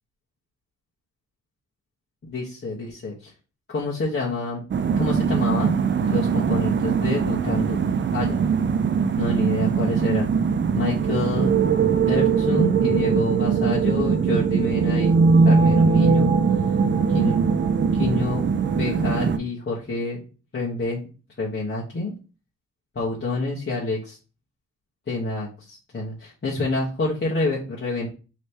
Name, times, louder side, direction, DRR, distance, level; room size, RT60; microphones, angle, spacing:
voice 1, 2.3-3.3 3.7-4.6 5.0-5.7 6.0-7.8 8.1-8.4 9.2-10.3 10.7-11.5 12.1-15.1 15.4-16.4 17.1-17.3 17.9-18.4 18.7-20.2 20.5-21.1 21.4-22.1 22.9-24.2 25.1-28.1, left 2 dB, 30° left, -7 dB, 1.1 m, -27 dB
sound 1, 4.7-19.4, right 5 dB, 35° right, 0.4 m, -21 dB
3.3 x 3.1 x 4.3 m, 0.34 s
wide cardioid pair, 135°, 33 cm